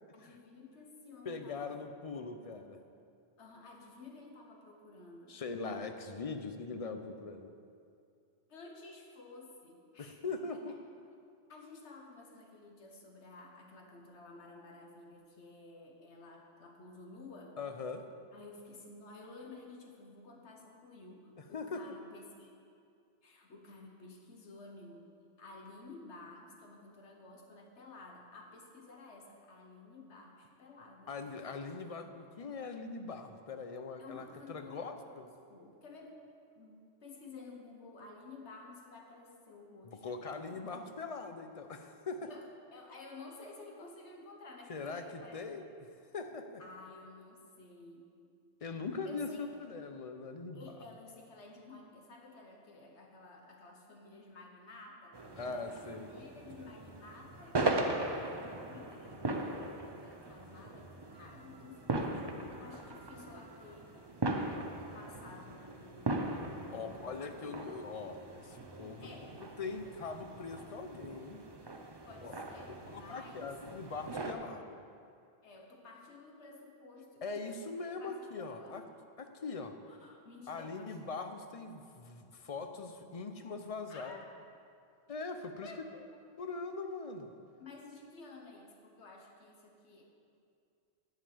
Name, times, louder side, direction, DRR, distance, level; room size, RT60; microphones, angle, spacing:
voice 1, 0.1-1.8 2.1-2.8 3.4-5.4 8.5-10.2 10.7-10.8 11.5-17.6 18.3-22.5 23.2-25.1 25.4-31.2 34.0-36.2 36.6-40.6 42.2-45.5 46.6-48.1 49.0-49.5 50.5-64.3 64.8-67.7 68.6-68.7 69.0-69.4 69.8-70.0 72.1-73.6 74.3-74.6 75.4-77.5 77.7-78.9 79.8-81.1 83.9-84.2 85.6-86.0 87.6-90.0, left 3 dB, 90° left, 1 dB, 1.4 m, -53 dB
voice 2, 1.3-2.8 5.3-7.5 10.0-10.8 17.6-18.0 21.5-21.8 31.1-35.3 39.9-42.3 44.7-45.6 46.1-46.6 48.6-50.7 55.4-56.1 66.7-69.1 69.4-71.4 72.2-72.3 72.7-74.8 77.2-78.8 79.2-79.7 80.5-84.2 85.1-85.7 86.4-87.3, left 4 dB, 40° left, 7 dB, 0.7 m, -41 dB
sound 1, 55.1-74.3, right 2 dB, 30° right, 0.6 m, -39 dB
10.5 x 5.5 x 8.4 m, 2.4 s
omnidirectional pair, 1.1 m